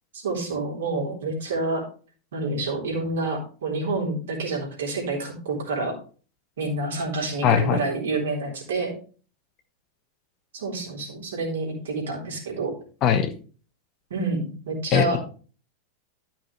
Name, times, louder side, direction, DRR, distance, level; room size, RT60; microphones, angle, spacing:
voice 1, 0.1-1.8 2.3-6.0 6.6-8.9 10.5-12.7 14.1-15.2, right 3 dB, 65° right, -2 dB, 3.7 m, -28 dB
voice 2, 7.4-7.8 13.0-13.3 14.9-15.2, left 8 dB, 35° left, 7 dB, 1.2 m, -20 dB
13.0 x 5.9 x 3.2 m, 0.39 s
figure-of-eight pair, 90°, 0 cm